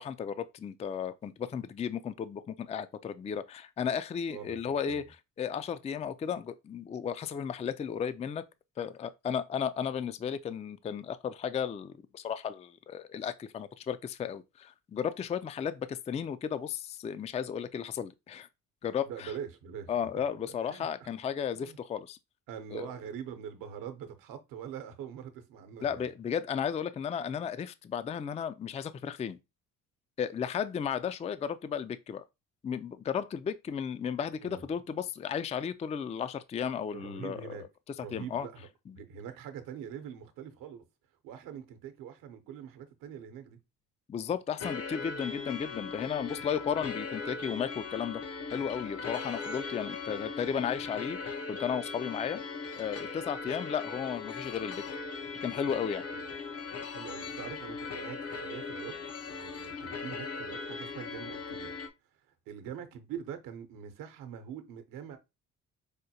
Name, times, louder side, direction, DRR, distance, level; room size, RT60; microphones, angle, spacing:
voice 1, 0.0-5.0 5.4-8.4 8.8-18.5 18.8-19.3 19.9-22.2 22.7-22.9 25.8-29.4 30.2-32.2 32.6-37.6 38.1-38.5 44.1-48.2 48.5-52.4 52.8-54.8 55.4-56.0, left 7 dB, 20° left, 0.3 m, -34 dB
voice 2, 4.3-5.1 19.0-19.9 20.5-21.1 21.5-21.8 22.5-26.1 34.4-34.6 36.9-37.6 38.0-38.7 39.0-40.8 41.2-43.6 56.1-56.2 56.9-61.8 62.5-65.2, right 8 dB, 80° right, 0.9 m, -43 dB
sound 1, 44.6-61.9, left 4 dB, 45° left, 0.8 m, -39 dB
5.0 x 2.2 x 2.8 m
supercardioid pair, 70°, 33 cm